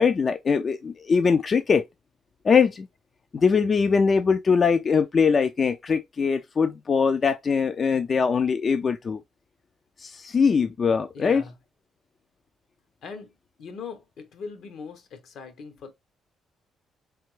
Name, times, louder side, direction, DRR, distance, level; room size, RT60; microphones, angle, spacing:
voice 1, 0.0-1.8 2.4-2.9 3.3-9.2 10.0-11.4, left 5 dB, 40° left, 0.3 m, -22 dB
voice 2, 11.1-11.6 13.0-15.9, left 5 dB, 70° left, 0.9 m, -40 dB
3.8 x 3.4 x 3.1 m
cardioid pair, 90°, 0 cm